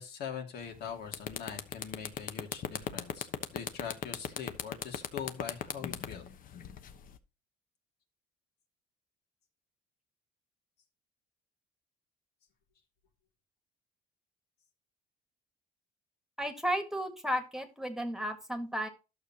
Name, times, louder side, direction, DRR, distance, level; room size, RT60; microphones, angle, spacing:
voice 1, 0.0-6.3, left 7 dB, 75° left, 3 dB, 2.6 m, -42 dB
sound 1, 0.6-0.8 1.1-7.2, left 8 dB, 55° left, 1.1 m, -37 dB
voice 2, 16.4-18.9, equal, 5° right, 7 dB, 1.7 m, -33 dB
12.0 x 6.8 x 2.9 m, 0.29 s
cardioid pair, 110°, 17 cm